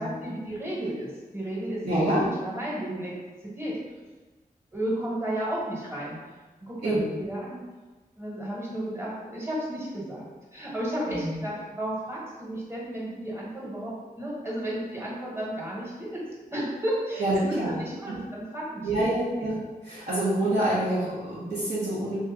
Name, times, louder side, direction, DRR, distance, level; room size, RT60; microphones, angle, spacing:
voice 1, 0.0-3.1 3.4-3.7 4.7-6.2 6.6-7.6 8.2-16.2 16.5-19.0, right 1 dB, 15° right, -6 dB, 1.4 m, -33 dB
voice 2, 1.8-2.3 6.8-7.1 11.1-11.3 17.2-17.8 18.0-18.2 18.8-22.2, right 1 dB, 75° right, -12 dB, 1.2 m, -27 dB
3.1 x 2.7 x 3.6 m, 1.2 s
cardioid pair, 60°, 15 cm